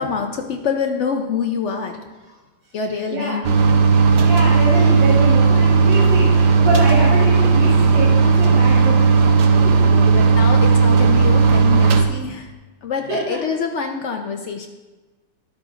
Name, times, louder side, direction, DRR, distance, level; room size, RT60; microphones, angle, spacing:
voice 1, 0.0-2.0 2.7-3.5 9.7-12.5 12.8-14.7, left 5 dB, 70° left, 4 dB, 0.6 m, -26 dB
voice 2, 3.1-3.5 4.2-9.1 9.6-10.1 13.1-13.4, right 1 dB, 85° right, -6 dB, 2.1 m, -25 dB
sound 1, 3.4-12.0, right 4 dB, 60° right, 0.9 m, -14 dB
12.0 x 8.6 x 2.5 m, 1.2 s
omnidirectional pair, 1.9 m